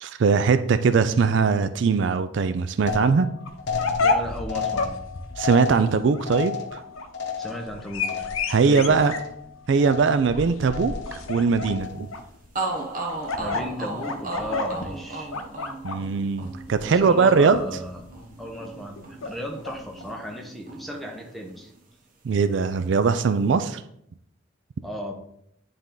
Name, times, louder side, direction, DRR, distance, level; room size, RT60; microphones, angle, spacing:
voice 1, 0.0-3.3 5.4-6.8 8.5-9.1 9.7-12.1 15.8-17.6 22.2-23.8, right 5 dB, 60° right, 11 dB, 0.4 m, -21 dB
sound 1, 2.9-8.6 8.9-9.5 9.8-10.3 10.7-11.2 11.6-12.1, left 6 dB, 55° left, 1.0 m, -33 dB
sound 2, 3.5-20.1, left 3 dB, 85° left, 0.7 m, -32 dB
voice 2, 4.0-5.0 7.4-8.3 8.7-9.0 13.4-15.3 16.9-18.0 18.4-21.7 24.8-25.1, equal, ahead, 1 dB, 0.8 m, -35 dB
sound 3, 12.1-12.2 12.5-20.4 20.7-21.8, right 2 dB, 40° right, 1.1 m, -36 dB
9.6 x 3.5 x 3.8 m, 0.74 s
head